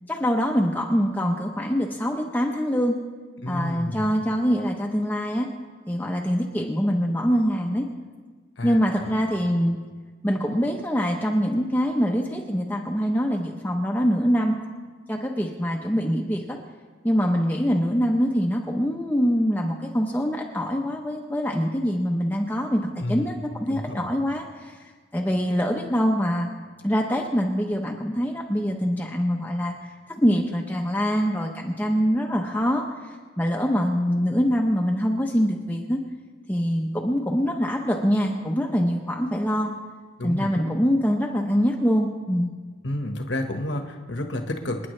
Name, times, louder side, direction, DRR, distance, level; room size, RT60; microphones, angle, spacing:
voice 1, 0.1-3.0 3.5-5.5 5.9-7.9 8.6-9.8 10.2-14.6 15.1-16.6 17.0-24.8 25.1-26.5 26.8-36.0 36.5-39.7 40.2-42.5, equal, 10° left, 0 dB, 0.8 m, -24 dB
voice 2, 3.4-4.1 8.6-8.8 9.0-9.2 23.0-23.3 23.7-24.1 40.2-40.6 42.8-44.9, left 1 dB, 75° left, 4 dB, 1.4 m, -30 dB
27.5 x 9.9 x 3.3 m, 1.4 s
head